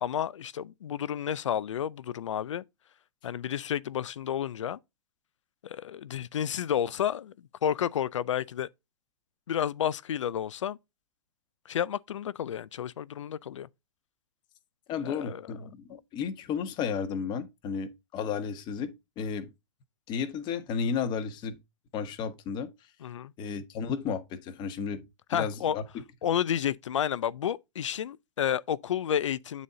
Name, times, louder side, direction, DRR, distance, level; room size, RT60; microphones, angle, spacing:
voice 1, 0.0-2.6 3.2-4.8 5.6-7.3 7.6-8.7 9.5-10.8 11.7-13.7 15.0-15.4 15.9-16.0 23.0-23.3 25.3-25.8 26.2-29.6, left 9 dB, 80° left, 0.4 m, -31 dB
voice 2, 14.9-19.5 20.1-21.6 21.9-22.7 23.4-25.0 25.3-25.8, left 6 dB, 30° left, 1.1 m, -33 dB
8.5 x 4.1 x 3.7 m
hypercardioid pair, 130°, 16 cm